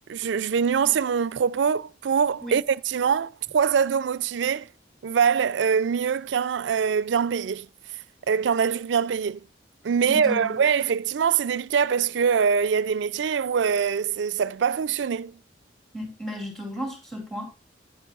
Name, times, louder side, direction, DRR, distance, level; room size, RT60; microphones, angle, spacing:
voice 1, 0.1-4.7 5.0-7.7 8.3-9.4 9.8-15.4, right 6 dB, 85° right, 0.4 m, -23 dB
voice 2, 10.0-10.6 15.9-17.5, equal, 5° left, 2.7 m, -34 dB
10.0 x 10.0 x 2.4 m
head